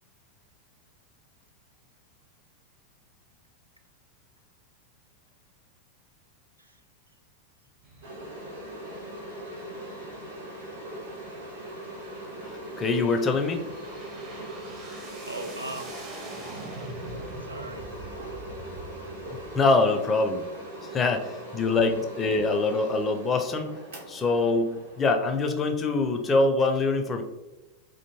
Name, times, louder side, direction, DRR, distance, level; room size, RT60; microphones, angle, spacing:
sound 1, 7.8-19.5, right 1 dB, 35° right, 0.7 m, -45 dB
sound 2, 8.0-26.5, right 1 dB, 65° right, 1.0 m, -41 dB
voice 1, 12.8-13.6 19.5-20.5 20.9-23.8 24.1-27.2, left 3 dB, 20° left, 5 dB, 0.4 m, -24 dB
voice 2, 15.2-16.2 16.5-16.8 17.1-18.5, right 1 dB, 85° right, 5 dB, 0.3 m, -41 dB
3.4 x 2.6 x 2.9 m, 1.0 s
figure-of-eight pair, 90°, 0 cm